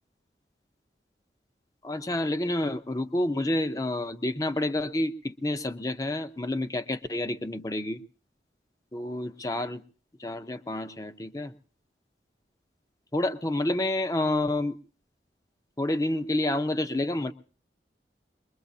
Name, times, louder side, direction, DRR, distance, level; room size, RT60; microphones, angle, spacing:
voice 1, 1.8-8.0 8.9-9.8 10.2-11.5 13.1-14.8 15.8-17.3, left 1 dB, 20° left, 9 dB, 0.7 m, -29 dB
22.5 x 22.0 x 2.8 m, 0.42 s
head